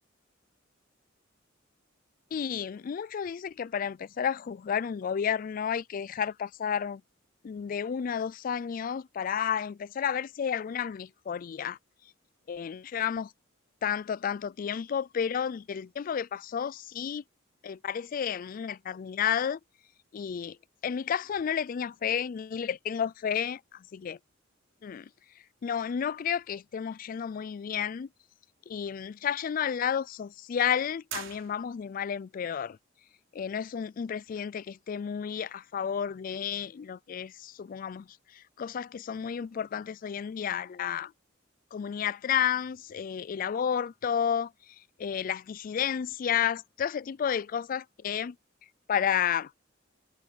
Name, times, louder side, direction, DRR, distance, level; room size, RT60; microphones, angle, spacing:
voice 1, 2.3-7.0 7.4-11.8 12.5-13.3 13.8-17.2 17.6-19.6 20.1-20.6 20.8-24.2 24.8-25.1 25.6-28.1 28.7-32.8 33.3-41.1 41.7-48.4 48.9-49.5, left 8 dB, 45° left, 0.3 m, -31 dB
sound 1, 31.1-32.1, right 10 dB, 75° right, 4.0 m, -42 dB
head